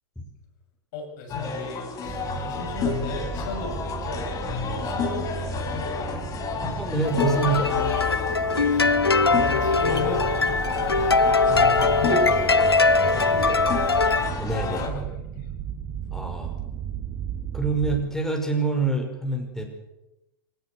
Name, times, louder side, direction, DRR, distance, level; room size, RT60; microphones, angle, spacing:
voice 1, 0.9-4.3 4.6-6.3 8.6-8.9 9.2-10.3 10.7-12.6 13.0-13.5 14.7-15.0, left 2 dB, 50° left, 2 dB, 7.5 m, -35 dB
sound 1, 1.3-14.9, left 5 dB, 30° left, 5.7 m, -30 dB
sound 2, 2.0-18.0, right 7 dB, 30° right, 5.5 m, -35 dB
voice 2, 6.6-7.8 14.4-14.9 16.1-16.5 17.5-19.6, right 3 dB, 5° left, 2 dB, 5.7 m, -26 dB
sound 3, 7.0-14.3, left 4 dB, 85° left, 1.0 m, -21 dB
25.5 x 18.0 x 8.2 m, 0.94 s
figure-of-eight pair, 95°, 13 cm